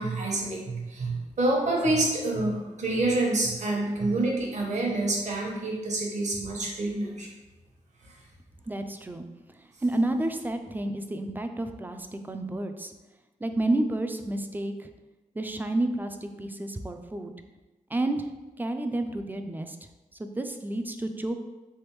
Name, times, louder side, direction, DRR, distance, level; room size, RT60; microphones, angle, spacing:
voice 1, 0.0-7.3 8.0-8.1, right 2 dB, 60° right, -1 dB, 1.1 m, -27 dB
voice 2, 8.7-9.2 9.5-12.9 13.4-14.9 15.4-17.3 17.9-18.3 18.6-19.8 20.2-21.4, right 1 dB, 15° right, 7 dB, 0.3 m, -30 dB
3.4 x 3.1 x 3.0 m, 1.1 s
cardioid pair, 70°, 14 cm